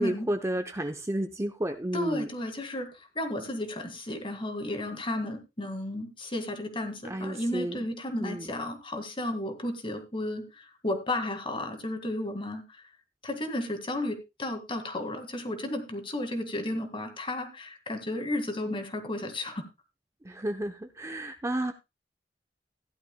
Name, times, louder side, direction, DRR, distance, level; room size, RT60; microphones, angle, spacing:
voice 1, 0.0-2.3 7.1-7.8 8.2-8.5 20.2-21.7, right 1 dB, 15° right, 6 dB, 0.7 m, -31 dB
voice 2, 1.9-2.9 3.2-12.8 13.2-19.6, left 1 dB, 30° left, 7 dB, 1.9 m, -33 dB
15.5 x 11.0 x 2.2 m, 0.24 s
head